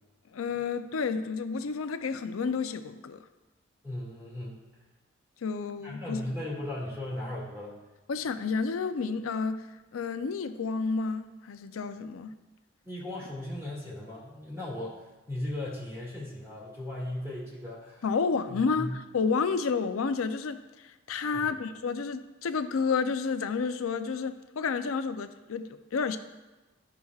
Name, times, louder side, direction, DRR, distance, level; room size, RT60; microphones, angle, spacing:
voice 1, 0.3-3.2 5.4-6.2 8.1-12.3 18.0-26.2, left 5 dB, 80° left, 0.5 m, -30 dB
voice 2, 3.8-4.6 5.8-7.8 12.8-18.0 18.5-19.0 21.3-21.6, left 1 dB, 10° right, 2.0 m, -37 dB
12.0 x 5.8 x 2.4 m
head